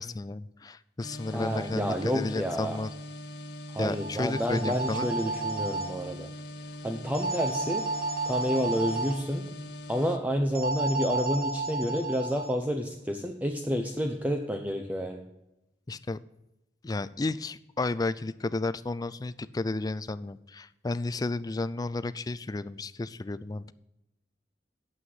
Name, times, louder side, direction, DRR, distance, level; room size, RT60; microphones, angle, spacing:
voice 1, 0.0-2.9 3.8-5.1 15.9-16.2 16.8-23.7, left 2 dB, 20° left, 15 dB, 0.4 m, -32 dB
sound 1, 1.0-10.2, left 1 dB, 65° left, 1.0 m, -42 dB
voice 2, 1.3-2.8 3.7-6.3 6.8-7.8 8.3-9.5 9.9-15.3, equal, 10° right, 3 dB, 0.7 m, -29 dB
sound 2, 3.9-5.9 7.1-9.1 10.5-12.5, right 3 dB, 60° right, 1.6 m, -32 dB
9.1 x 7.9 x 5.5 m, 0.91 s
head